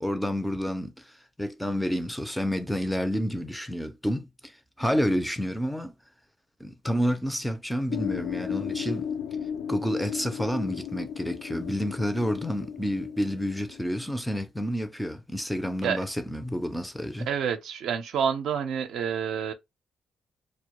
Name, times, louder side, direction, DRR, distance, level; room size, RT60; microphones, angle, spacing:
voice 1, 0.0-5.9 6.6-9.1 9.7-17.3, equal, 5° left, 0.4 m, -29 dB
sound 1, 7.9-14.1, left 8 dB, 85° left, 0.3 m, -34 dB
voice 2, 17.3-19.5, right 7 dB, 75° right, 0.4 m, -28 dB
2.1 x 2.0 x 2.9 m
cardioid pair, 90°, 0 cm